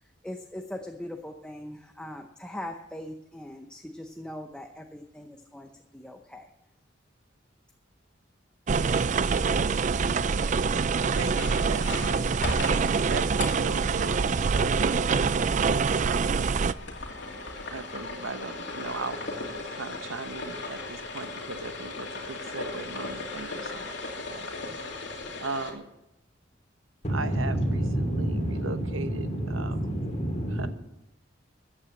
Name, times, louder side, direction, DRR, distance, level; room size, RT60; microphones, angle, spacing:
voice 1, 0.0-6.5 24.7-24.9, left 1 dB, 5° left, 0.7 m, -41 dB
sound 1, 8.7-16.7, right 5 dB, 40° right, 0.4 m, -25 dB
voice 2, 11.1-15.1 15.6-16.4 17.7-19.2 19.7-24.5 25.4-25.8 27.1-29.8 30.5-30.7, right 3 dB, 90° right, 1.0 m, -38 dB
sound 2, 11.4-25.7, left 2 dB, 60° left, 2.4 m, -38 dB
voice 3, 27.0-30.7, right 1 dB, 35° left, 2.8 m, -28 dB
14.0 x 8.8 x 7.6 m
head